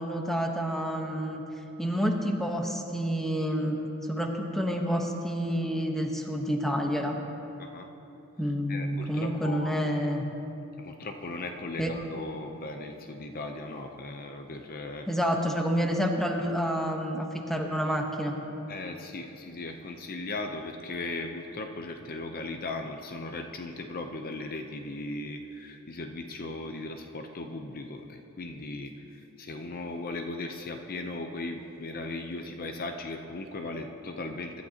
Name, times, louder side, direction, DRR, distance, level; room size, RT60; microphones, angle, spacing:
voice 1, 0.0-1.4 1.8-3.8 4.1-7.2 8.4-10.2 11.8-11.9 15.1-18.3, equal, ahead, 2 dB, 1.0 m, -29 dB
voice 2, 8.7-9.8 10.8-15.1 18.7-34.6, left 2 dB, 40° left, 4 dB, 0.7 m, -37 dB
23.5 x 12.5 x 2.9 m, 3.0 s
head